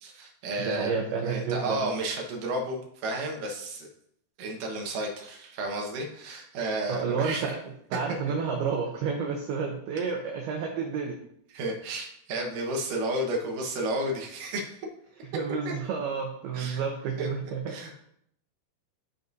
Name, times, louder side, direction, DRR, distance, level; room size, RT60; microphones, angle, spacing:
voice 1, 0.0-3.9 4.4-7.5 11.5-14.9 15.7-15.8 16.5-16.8 17.2-18.0, right 1 dB, 70° right, 0 dB, 2.1 m, -32 dB
voice 2, 0.6-1.9 6.9-7.6 7.9-11.2 15.3-17.6, right 5 dB, 85° right, 2 dB, 2.2 m, -30 dB
14.5 x 5.1 x 2.7 m, 0.72 s
omnidirectional pair, 5.6 m